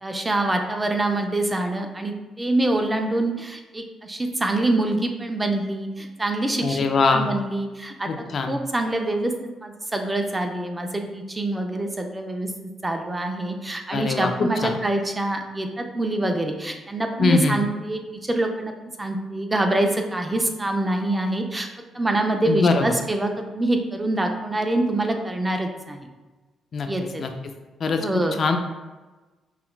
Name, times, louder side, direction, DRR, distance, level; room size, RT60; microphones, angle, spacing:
voice 1, 0.0-6.9 7.1-8.1 8.5-9.3 9.6-12.5 12.8-18.7 19.0-21.7 21.9-26.0 26.9-27.2 28.0-28.3, right 2 dB, 15° right, 4 dB, 0.4 m, -25 dB
voice 2, 6.6-7.3 8.1-8.6 13.9-14.8 17.2-17.6 22.5-22.9 26.7-26.9 27.2-27.3 27.8-28.1 28.4-28.6, left 4 dB, 50° left, 5 dB, 0.3 m, -22 dB
5.5 x 2.3 x 2.3 m, 1.2 s
cardioid pair, 90°, 0 cm